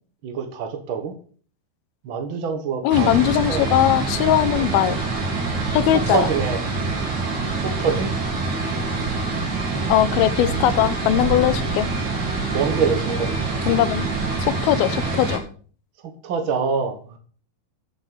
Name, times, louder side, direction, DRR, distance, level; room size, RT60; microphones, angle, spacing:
voice 1, 0.2-1.1 2.0-3.8 4.6-4.7 5.9-6.6 7.6-8.1 12.5-13.4 16.2-17.2, right 6 dB, 65° right, 6 dB, 1.2 m, -25 dB
voice 2, 2.8-5.0 5.7-6.3 9.9-11.9 13.7-14.1 14.4-15.4, left 12 dB, 80° left, 14 dB, 2.6 m, -20 dB
sound 1, 2.9-15.4, right 3 dB, 50° right, 4.9 m, -25 dB
11.5 x 7.4 x 6.6 m, 0.43 s
omnidirectional pair, 4.5 m